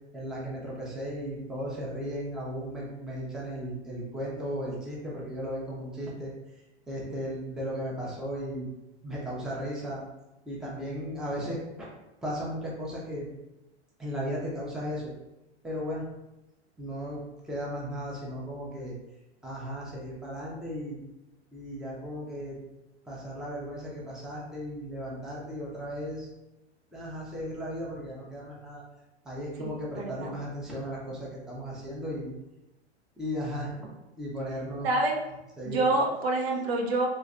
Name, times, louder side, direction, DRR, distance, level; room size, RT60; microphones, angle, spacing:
voice 1, 0.1-6.3 6.9-8.7 9.0-10.0 10.5-11.9 12.2-13.3 14.0-15.1 15.6-16.0 16.8-17.2 17.4-18.9 19.4-21.0 21.5-22.6 23.1-26.3 26.9-28.8 29.2-32.3 33.2-33.9 34.2-34.9 35.6-35.8, equal, ahead, -6 dB, 0.6 m, -35 dB
voice 2, 29.6-30.3 34.8-35.1 35.7-37.1, right 2 dB, 65° right, 0 dB, 0.8 m, -27 dB
3.1 x 3.1 x 2.5 m, 0.96 s
hypercardioid pair, 120°, 34 cm